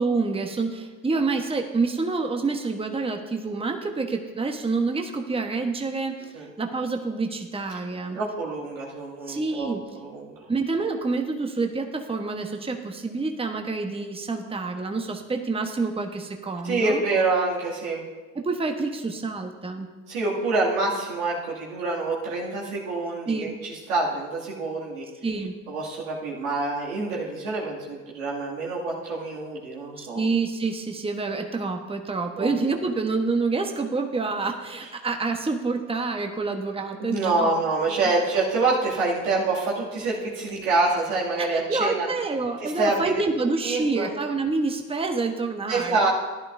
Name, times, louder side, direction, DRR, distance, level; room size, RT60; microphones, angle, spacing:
voice 1, 0.0-6.3 6.6-8.2 9.3-9.8 10.5-17.0 18.3-19.9 23.3-23.5 25.2-25.5 30.0-37.6 37.9-38.1 41.4-46.1, right 3 dB, 15° right, 4 dB, 1.1 m, -27 dB
voice 2, 8.1-9.7 10.0-10.4 16.6-18.0 20.1-25.1 25.7-30.2 32.4-32.5 37.0-42.1 42.6-43.2 43.6-44.1 45.7-46.1, right 3 dB, 90° right, -6 dB, 2.5 m, -26 dB
13.5 x 11.0 x 2.6 m, 1.3 s
hypercardioid pair, 60°, 41 cm